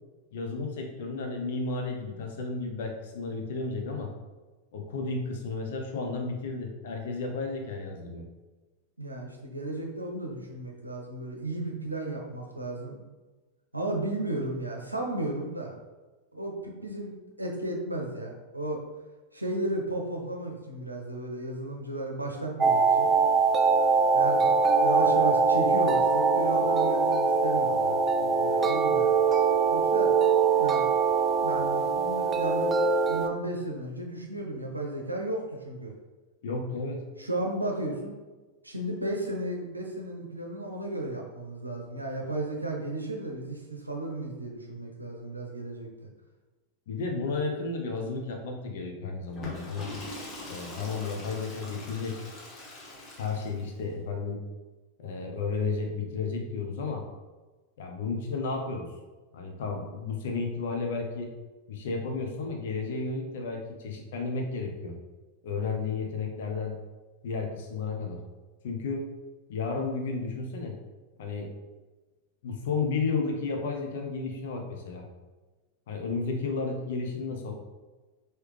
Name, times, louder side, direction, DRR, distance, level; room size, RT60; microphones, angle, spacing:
voice 1, 0.3-4.1 4.7-8.2 36.4-37.0 46.9-49.9 50.5-52.2 53.2-54.4 55.0-57.0 57.8-58.9 59.3-61.3 61.7-65.0 65.4-66.8 67.2-68.2 68.6-69.1 69.5-70.8 71.2-71.5 72.4-75.0 75.9-77.5, left 4 dB, 55° left, 2 dB, 0.8 m, -32 dB
voice 2, 9.0-13.0 13.7-15.7 16.3-17.1 17.4-18.8 19.3-23.1 24.1-29.1 29.7-30.1 30.6-30.8 31.4-35.9 37.2-38.1 38.6-46.1, right 1 dB, 85° right, 0 dB, 0.6 m, -34 dB
sound 1, 22.6-33.3, right 4 dB, 20° right, 0.3 m, -23 dB
Water / Toilet flush, 49.3-53.8, left 2 dB, 30° left, 1.0 m, -42 dB
4.7 x 3.2 x 3.2 m, 1.2 s
figure-of-eight pair, 90°, 0 cm